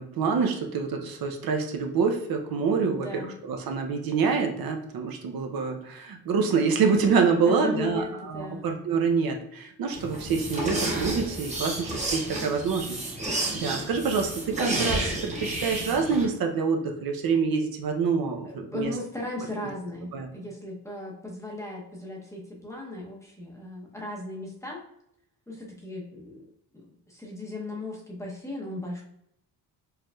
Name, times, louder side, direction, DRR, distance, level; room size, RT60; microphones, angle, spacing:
voice 1, 0.0-18.9 20.1-20.3, right 5 dB, 65° right, 3 dB, 0.6 m, -26 dB
voice 2, 2.9-3.3 7.4-8.7 18.4-24.8 25.5-26.4 26.7-29.0, left 2 dB, 10° left, -3 dB, 0.7 m, -37 dB
sound 1, 9.9-16.2, right 1 dB, 20° right, 0.9 m, -31 dB
4.8 x 3.1 x 2.3 m, 0.75 s
wide cardioid pair, 160°, 39 cm